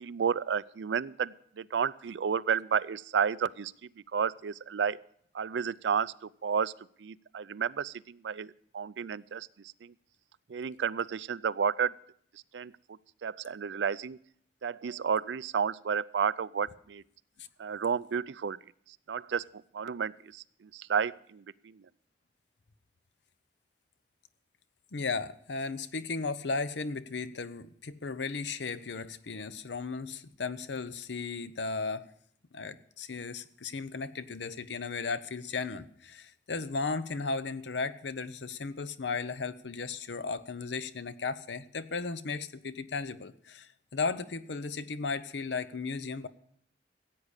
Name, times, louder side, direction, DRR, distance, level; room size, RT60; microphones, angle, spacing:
voice 1, 0.0-3.7 4.1-5.0 5.3-6.7 7.0-9.5 9.8-9.9 10.5-12.0 12.5-12.7 13.2-14.2 14.6-17.0 17.6-18.6 19.1-19.5 19.7-21.8, right 7 dB, 90° right, 19 dB, 0.4 m, -31 dB
voice 2, 24.9-32.0 32.5-46.3, left 4 dB, 85° left, 14 dB, 0.8 m, -35 dB
15.5 x 8.5 x 6.5 m, 0.65 s
head